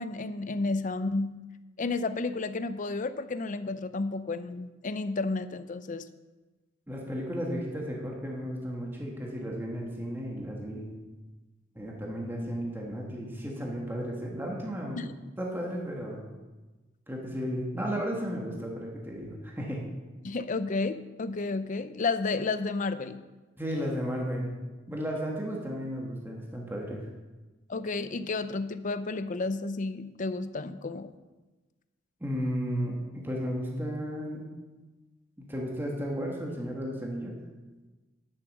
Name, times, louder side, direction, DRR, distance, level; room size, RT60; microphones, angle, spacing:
voice 1, 0.0-1.3 1.8-6.0 15.0-15.1 20.2-23.2 27.7-31.1, left 3 dB, 40° left, 12 dB, 0.6 m, -31 dB
voice 2, 6.9-11.0 11.7-15.0 15.4-16.3 17.1-19.8 23.6-24.5 24.9-27.0 32.2-34.5 35.4-37.3, equal, 10° right, -2 dB, 1.6 m, -34 dB
11.0 x 7.3 x 6.4 m, 1.2 s
head